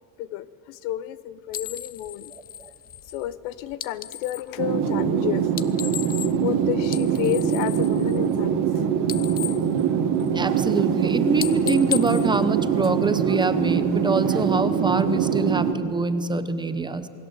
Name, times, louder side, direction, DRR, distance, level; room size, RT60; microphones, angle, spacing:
voice 1, 0.2-2.3 3.1-5.5 6.4-8.6, left 12 dB, 90° left, 15 dB, 1.1 m, -31 dB
sound 1, 1.5-4.5 5.4-6.5 6.8-8.7 9.0-10.5 10.9-11.1 11.4-13.2, left 9 dB, 25° left, 0.5 m, -35 dB
sound 2, 4.6-15.7, right 7 dB, 50° right, 1.8 m, -23 dB
voice 2, 10.3-17.1, right 3 dB, 10° right, 11 dB, 0.8 m, -25 dB
28.0 x 20.5 x 8.0 m, 2.8 s
cardioid pair, 150°, 40 cm